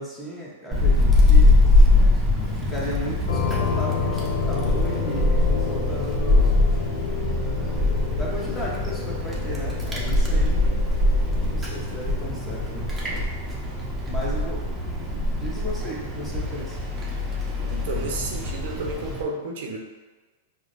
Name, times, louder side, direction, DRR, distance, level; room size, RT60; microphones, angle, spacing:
voice 1, 0.0-1.6 2.5-6.7 8.1-10.6 11.3-13.3 14.0-16.8, equal, 10° left, -5 dB, 1.0 m, -35 dB
Wind, 0.7-19.2, left 2 dB, 10° right, 0.7 m, -22 dB
sound 1, 3.3-12.8, left 7 dB, 75° left, 0.5 m, -31 dB
voice 2, 10.4-10.8 17.7-19.8, right 3 dB, 65° right, 0 dB, 0.6 m, -32 dB
4.9 x 2.1 x 2.6 m, 1.3 s
hypercardioid pair, 125°, 0 cm